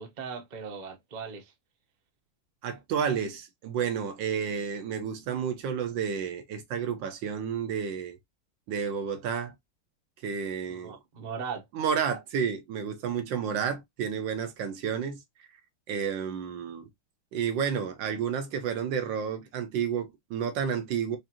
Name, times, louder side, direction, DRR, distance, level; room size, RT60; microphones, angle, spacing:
voice 1, 0.0-1.5 10.7-11.7, right 6 dB, 50° right, 0.5 m, -38 dB
voice 2, 2.6-8.2 8.7-9.5 10.2-11.0 11.7-15.2 15.9-16.9 17.3-21.2, right 7 dB, 70° right, 1.2 m, -31 dB
4.9 x 2.5 x 2.8 m
omnidirectional pair, 2.4 m